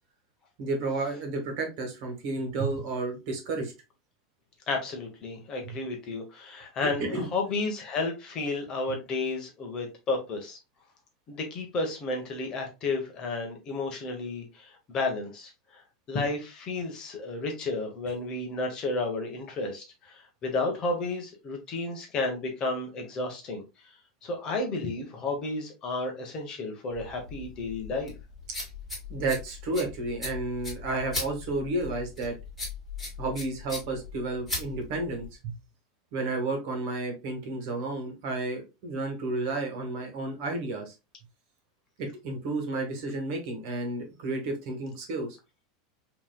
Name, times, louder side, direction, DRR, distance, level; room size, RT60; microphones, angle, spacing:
voice 1, 0.6-3.7 5.6-5.8 6.8-7.2 29.1-32.3 33.2-35.5 36.1-40.9 42.0-45.3, right 2 dB, 45° right, 3 dB, 1.4 m, -32 dB
voice 2, 4.7-10.6 11.3-15.8 16.1-23.6 24.2-28.1, left 3 dB, 25° left, 2 dB, 0.9 m, -32 dB
sound 1, 26.9-35.3, left 3 dB, ahead, 2.2 m, -38 dB
5.4 x 2.9 x 2.2 m, 0.27 s
supercardioid pair, 175°, 3 cm